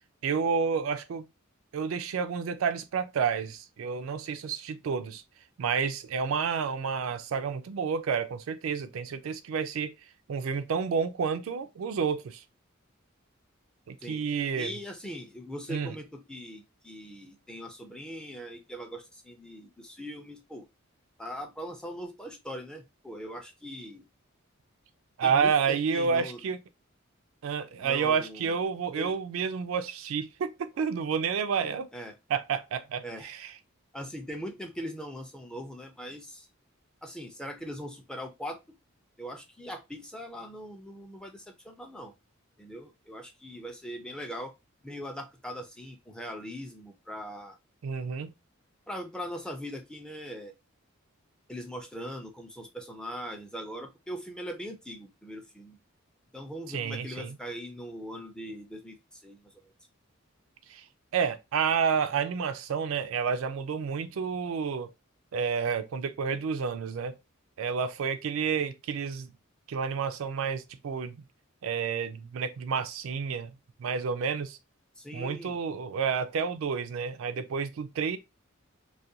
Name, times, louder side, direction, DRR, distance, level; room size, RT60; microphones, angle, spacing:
voice 1, 0.2-1.3 1.7-5.2 5.6-9.9 10.3-12.4 13.9-14.7 15.7-15.9 25.2-26.6 27.4-31.9 32.3-33.5 47.8-48.3 56.7-57.4 60.7-60.8 61.1-64.9 65.3-67.2 67.6-69.3 69.7-71.2 71.6-73.5 73.8-74.6 75.1-78.2, right 6 dB, 70° right, 0.4 m, -30 dB
voice 2, 14.5-20.7 21.2-24.1 25.2-26.5 27.8-28.6 28.9-29.2 31.9-32.2 33.0-33.3 33.9-36.5 37.0-38.6 39.2-42.1 42.6-44.5 44.8-47.6 48.9-50.5 51.5-55.8 56.3-59.7 75.0-75.6, equal, 5° left, 0.4 m, -41 dB
2.4 x 2.2 x 2.6 m
head